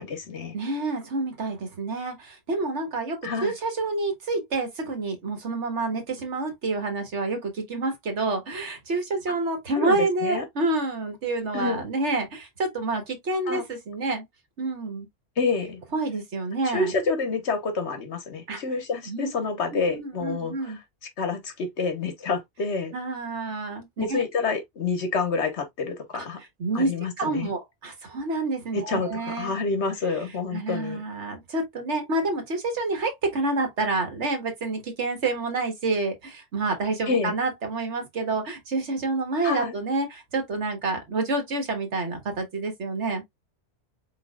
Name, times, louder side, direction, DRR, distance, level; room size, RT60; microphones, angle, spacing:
voice 1, 0.0-0.5 3.2-3.5 9.7-10.4 11.5-11.8 13.5-13.6 15.4-15.8 16.6-20.7 21.2-22.9 24.0-26.4 26.7-27.5 28.7-31.0 37.1-37.3 39.4-39.7, left 4 dB, 80° left, 1.5 m, -28 dB
voice 2, 0.5-14.2 14.6-15.1 15.9-16.9 18.5-18.6 19.0-19.3 19.7-20.8 22.9-24.2 26.1-26.9 27.2-29.5 30.5-43.2, right 3 dB, 90° right, 1.7 m, -28 dB
4.8 x 4.0 x 2.3 m
omnidirectional pair, 1.1 m